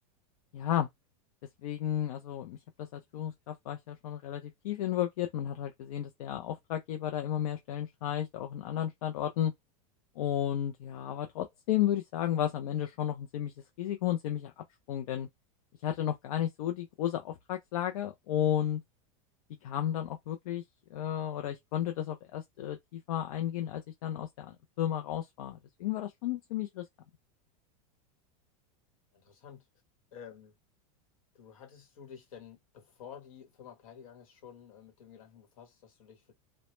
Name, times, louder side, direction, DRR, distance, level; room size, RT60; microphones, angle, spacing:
voice 1, 0.5-0.9 1.6-9.5 10.2-15.3 15.8-18.8 19.6-20.6 20.9-26.8, left 11 dB, 85° left, 0.4 m, -33 dB
voice 2, 29.1-29.7 30.1-30.5 31.3-36.3, left 8 dB, 70° left, 1.0 m, -51 dB
2.1 x 2.0 x 2.9 m
supercardioid pair, 170°, 18 cm